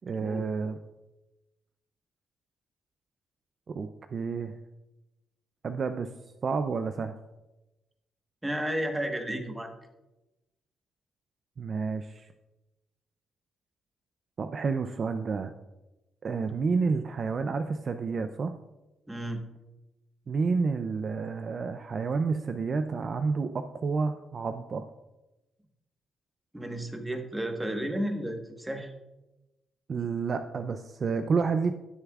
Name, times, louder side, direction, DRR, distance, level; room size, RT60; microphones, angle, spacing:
voice 1, 0.0-0.8 3.7-4.5 5.6-6.1 6.4-7.1 11.6-12.3 14.4-15.5 16.2-18.6 20.3-24.8 29.9-31.7, right 4 dB, 45° right, 8 dB, 0.4 m, -30 dB
voice 2, 8.4-9.7 19.1-19.4 26.5-28.9, right 1 dB, 10° right, 4 dB, 1.3 m, -32 dB
18.0 x 6.6 x 2.4 m, 1.0 s
cardioid pair, 105°, 0 cm